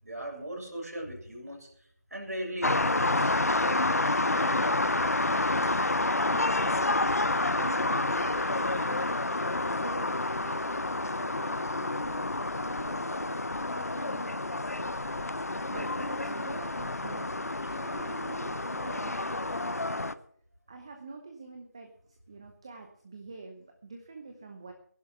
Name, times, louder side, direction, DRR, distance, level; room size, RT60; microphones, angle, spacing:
voice 1, 0.0-1.7 2.1-4.7 13.7-13.8, right 1 dB, 70° right, 0 dB, 6.8 m, -39 dB
sound 1, 2.6-20.1, left 2 dB, 65° left, 0.9 m, -29 dB
voice 2, 6.2-10.7 11.0-13.4 13.7-20.1 20.7-21.9 22.3-24.7, right 3 dB, 20° right, 4 dB, 1.0 m, -46 dB
16.0 x 11.5 x 5.9 m, 0.65 s
figure-of-eight pair, 170°, 9 cm